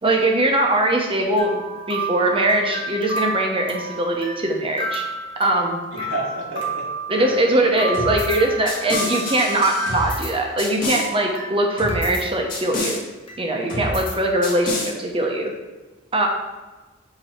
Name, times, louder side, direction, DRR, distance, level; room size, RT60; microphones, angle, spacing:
voice 1, 0.0-1.6 1.9-5.0 5.4-5.8 7.1-13.0 13.4-14.7 15.0-15.5 16.1-16.3, right 1 dB, 30° right, 1 dB, 0.9 m, -21 dB
sound 1, 1.4-10.6 10.8-12.3 12.6-12.7 13.3-13.4, right 2 dB, 30° left, 1.1 m, -31 dB
voice 2, 5.9-6.9 7.1-8.1 13.7-13.9, right 2 dB, 85° right, -3 dB, 1.8 m, -32 dB
sound 2, 7.9-8.4 8.7-10.3 10.6-11.1 11.8-12.2 12.5-13.0 13.7-14.1 14.4-14.9, left 2 dB, 45° left, 1.6 m, -28 dB
8.0 x 3.0 x 4.4 m, 1.2 s
head